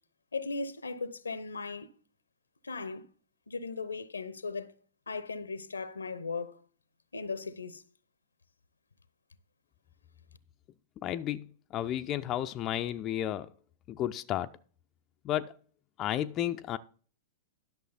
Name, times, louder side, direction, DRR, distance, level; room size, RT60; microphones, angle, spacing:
voice 1, 0.3-1.9 2.6-3.0 3.5-4.7 5.1-6.6 7.1-7.8, left 4 dB, 80° left, 0.7 m, -37 dB
voice 2, 11.0-13.5 13.9-14.5 15.2-15.5 16.0-16.8, left 12 dB, 35° left, 0.4 m, -32 dB
11.0 x 6.3 x 4.0 m
figure-of-eight pair, 100°, 0 cm